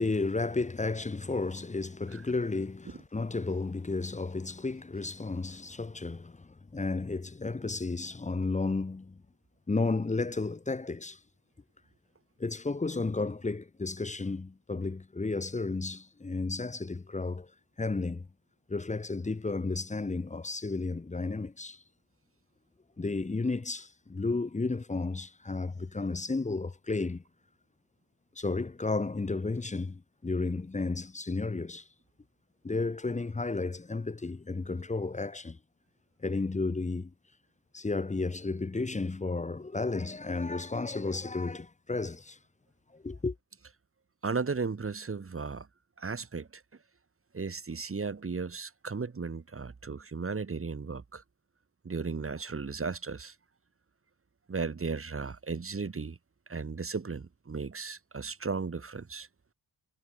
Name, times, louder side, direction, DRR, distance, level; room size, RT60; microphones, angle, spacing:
voice 1, 0.0-9.2 9.7-11.2 12.4-17.5 17.8-18.3 18.7-21.8 23.0-27.2 28.4-31.9 32.6-35.6 36.2-37.1 37.7-42.4 42.9-43.4, left 3 dB, 15° left, 0.6 m, -33 dB
voice 2, 44.2-45.7 46.0-46.6 47.3-51.2 51.8-53.3 54.5-56.2 56.5-59.3, right 4 dB, 30° right, 1.1 m, -35 dB
cardioid pair, 45°, 47 cm